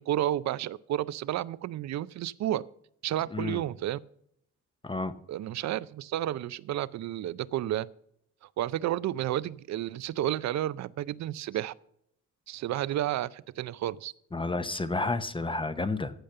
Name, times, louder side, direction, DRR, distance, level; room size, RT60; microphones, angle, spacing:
voice 1, 0.0-2.6 3.0-4.0 5.3-7.9 8.6-11.7 12.5-14.1, right 13 dB, 65° right, 19 dB, 0.5 m, -31 dB
voice 2, 3.3-3.6 4.8-5.1 14.3-16.1, left 3 dB, 15° left, 11 dB, 0.8 m, -30 dB
14.5 x 5.2 x 6.7 m, 0.71 s
cardioid pair, 90°, 30 cm